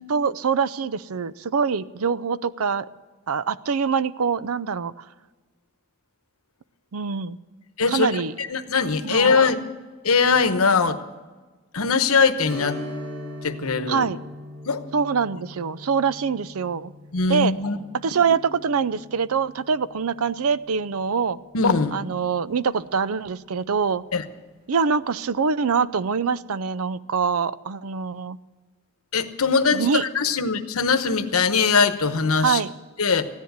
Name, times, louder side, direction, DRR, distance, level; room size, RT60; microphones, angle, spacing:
voice 1, 0.1-2.9 3.3-5.0 6.9-7.4 7.9-8.3 9.0-9.4 13.9-14.2 14.9-16.9 17.3-17.5 18.0-21.4 21.9-24.0 24.7-28.4 29.7-30.0 32.4-32.7, right 6 dB, 80° right, 17 dB, 0.5 m, -24 dB
voice 2, 7.8-9.6 10.0-11.0 11.7-12.8 13.4-14.1 14.7-14.8 17.1-17.8 21.5-22.0 24.1-24.2 29.1-32.6 33.0-33.3, left 5 dB, 80° left, 10 dB, 1.1 m, -21 dB
Strum, 12.4-21.6 22.0-22.1 24.6-24.8 25.2-25.3, equal, 60° right, 4.7 m, -40 dB
15.0 x 10.5 x 8.1 m, 1.3 s
head